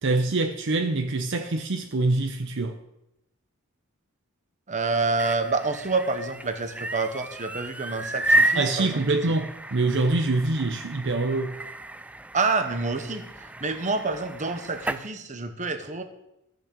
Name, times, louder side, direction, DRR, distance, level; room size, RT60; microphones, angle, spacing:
voice 1, 0.0-2.8 8.5-11.6, right 2 dB, 60° right, 0.8 m, -25 dB
voice 2, 4.7-9.0 12.3-13.2 13.6-16.0, right 3 dB, 35° right, 1.1 m, -27 dB
sound 1, 4.9-15.1, right 1 dB, 5° right, 0.3 m, -31 dB
13.5 x 6.5 x 6.7 m
head